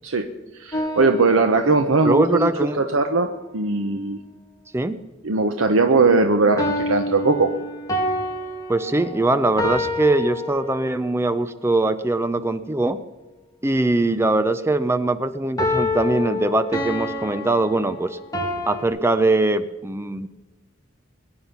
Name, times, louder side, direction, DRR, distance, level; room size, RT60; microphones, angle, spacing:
voice 1, 0.6-2.5 2.8-3.3 3.5-4.2 5.2-7.5, right 3 dB, 90° right, 6 dB, 0.9 m, -19 dB
sound 1, 0.7-2.1 6.6-11.1 15.6-18.8, left 1 dB, 20° left, 2.2 m, -28 dB
voice 2, 2.0-2.8 4.7-4.9 8.7-13.0 13.6-18.2 18.7-20.3, right 2 dB, 10° right, 12 dB, 0.5 m, -21 dB
22.0 x 9.6 x 5.8 m, 1.2 s
head